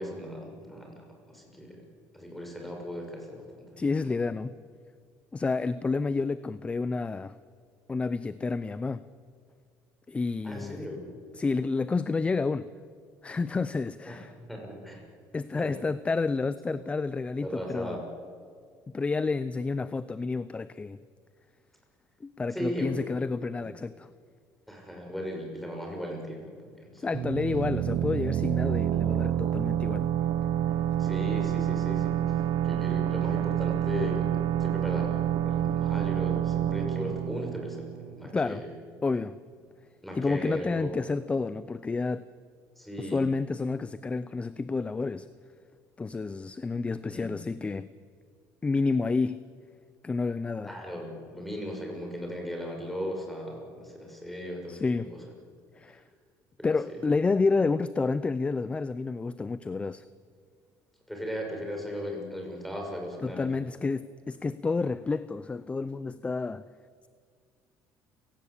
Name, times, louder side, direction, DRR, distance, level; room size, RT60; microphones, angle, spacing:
voice 1, 0.0-1.8 2.1-4.1 10.4-11.1 14.0-15.1 15.5-15.7 16.6-16.8 17.4-18.0 22.5-23.1 23.6-23.7 24.7-27.2 31.0-38.7 40.0-41.0 42.8-43.3 47.1-47.3 50.6-55.2 56.6-56.7 61.1-63.5, equal, ahead, 1 dB, 6.5 m, -37 dB
voice 2, 3.8-4.6 5.3-7.3 7.9-9.1 10.1-10.9 11.4-12.7 13.2-14.3 15.3-18.0 18.9-21.0 22.2-24.1 27.0-30.1 38.3-38.6 39.0-39.4 40.1-42.3 43.0-45.3 46.0-47.9 48.6-49.4 50.0-50.8 54.7-55.1 55.8-56.0 56.6-60.0 63.2-66.6, left 4 dB, 15° left, 15 dB, 0.6 m, -29 dB
sound 1, 27.1-38.6, right 11 dB, 65° right, 0.9 m, -28 dB
29.5 x 18.0 x 8.5 m, 2.1 s
cardioid pair, 125°, 7 cm